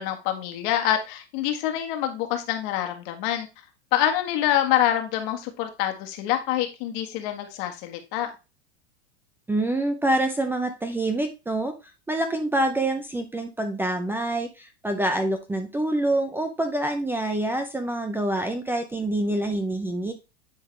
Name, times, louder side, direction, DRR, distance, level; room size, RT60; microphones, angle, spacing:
voice 1, 0.0-3.5 3.9-8.3, left 11 dB, 55° left, 5 dB, 1.8 m, -26 dB
voice 2, 9.5-11.7 12.1-20.1, right 1 dB, 5° right, 6 dB, 0.6 m, -26 dB
9.6 x 4.0 x 3.3 m, 0.28 s
supercardioid pair, 125°, 32 cm